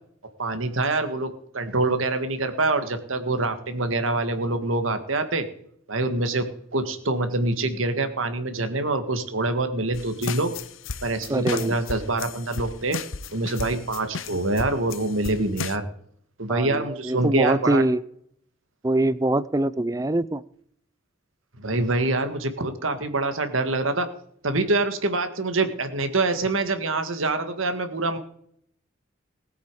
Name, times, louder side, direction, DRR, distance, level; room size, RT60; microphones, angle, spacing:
voice 1, 0.4-5.5 5.9-10.5 11.0-13.0 13.3-15.9 16.4-17.8 21.6-24.1 24.4-28.2, right 2 dB, 90° right, 9 dB, 1.8 m, -25 dB
sound 1, 9.9-15.8, left 5 dB, 80° left, 0.8 m, -34 dB
voice 2, 11.3-11.8 16.5-18.0 18.8-20.4, right 1 dB, 15° right, 18 dB, 0.4 m, -23 dB
19.5 x 8.5 x 4.8 m, 0.66 s
head